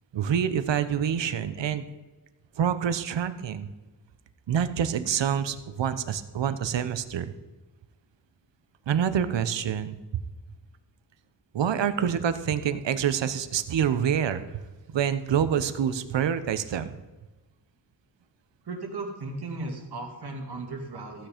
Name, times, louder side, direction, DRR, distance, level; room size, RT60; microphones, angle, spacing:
voice 1, 0.1-1.8 2.6-3.7 4.5-7.3 8.9-10.0 11.5-14.6 14.9-16.9, right 8 dB, 90° right, 12 dB, 0.9 m, -26 dB
voice 2, 18.6-21.3, right 2 dB, 65° right, 2 dB, 2.5 m, -36 dB
15.0 x 8.8 x 5.1 m, 1.1 s
wide cardioid pair, 120°, 42 cm